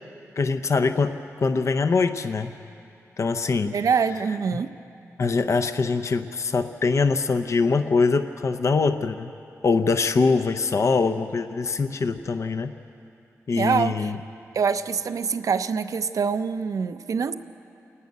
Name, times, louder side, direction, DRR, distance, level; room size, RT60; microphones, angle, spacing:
voice 1, 0.4-2.5 3.2-3.7 5.2-9.3 9.6-12.7 13.5-14.2, left 4 dB, 55° left, 8 dB, 0.7 m, -23 dB
voice 2, 3.7-4.7 13.5-14.1 14.5-17.3, right 6 dB, 70° right, 11 dB, 0.7 m, -25 dB
29.0 x 11.5 x 9.4 m, 2.7 s
wide cardioid pair, 100°, 6 cm